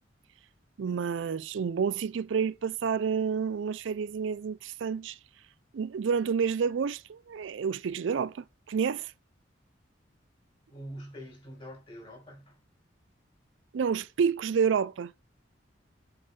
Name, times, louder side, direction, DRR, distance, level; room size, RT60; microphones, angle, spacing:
voice 1, 0.8-5.2 5.7-9.1 13.7-15.1, right 6 dB, 75° right, 0.4 m, -29 dB
voice 2, 10.7-12.6, equal, 30° left, 4.4 m, -45 dB
7.9 x 3.8 x 5.3 m
head